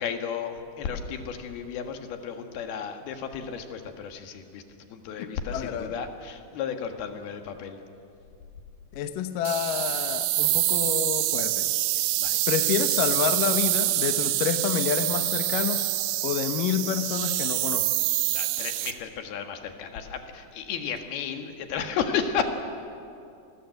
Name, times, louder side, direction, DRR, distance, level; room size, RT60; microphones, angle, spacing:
voice 1, 0.0-4.6 4.9-7.8 12.2-12.4 18.3-22.5, left 7 dB, 85° left, 6 dB, 3.6 m, -33 dB
voice 2, 5.2-5.9 8.9-11.7 12.5-15.9 16.2-17.9, left 8 dB, 70° left, 8 dB, 2.5 m, -28 dB
sound 1, 9.5-18.9, right 15 dB, 85° right, 2.9 m, -26 dB
28.0 x 20.5 x 7.9 m, 2.5 s
omnidirectional pair, 4.3 m